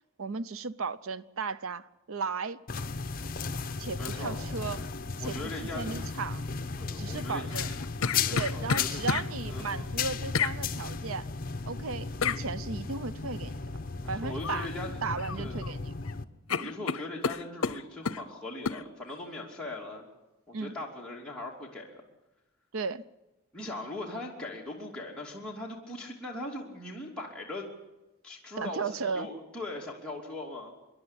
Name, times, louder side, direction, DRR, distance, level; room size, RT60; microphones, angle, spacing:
voice 1, 0.2-2.6 3.8-4.9 5.2-6.5 7.0-7.7 8.3-11.3 11.6-13.6 14.1-14.7 15.0-15.9 16.5-16.7 20.5-20.8 22.7-23.0 28.6-29.3, right 4 dB, 80° right, 0.7 m, -35 dB
sound 1, 2.7-16.2, left 4 dB, 40° left, 0.9 m, -35 dB
voice 2, 4.0-4.4 5.2-5.9 6.8-7.5 8.2-9.0 9.5-9.8 14.0-15.0 15.4-15.6 16.6-20.1 20.5-22.0 23.5-27.7 28.2-30.7, left 2 dB, 5° left, 2.8 m, -40 dB
sound 2, 7.5-9.3 10.3-10.6 12.2-12.4 14.4-14.7 15.1-15.7 16.0-16.2 16.5-18.2 18.7-18.8, left 6 dB, 80° left, 0.7 m, -30 dB
26.5 x 11.0 x 9.9 m
head